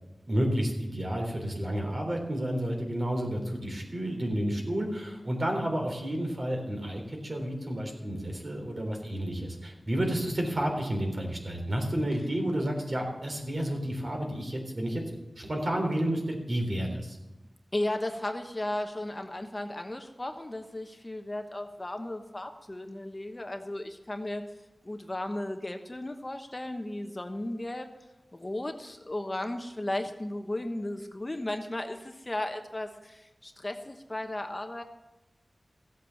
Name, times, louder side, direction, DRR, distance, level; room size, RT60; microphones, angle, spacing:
voice 1, 0.3-15.0 15.4-17.2, right 1 dB, 50° right, 1 dB, 3.7 m, -31 dB
voice 2, 17.7-24.4 24.8-27.9 28.3-34.8, left 1 dB, 30° left, 5 dB, 1.1 m, -35 dB
15.5 x 8.3 x 7.1 m, 1.0 s
wide cardioid pair, 75°, 0 cm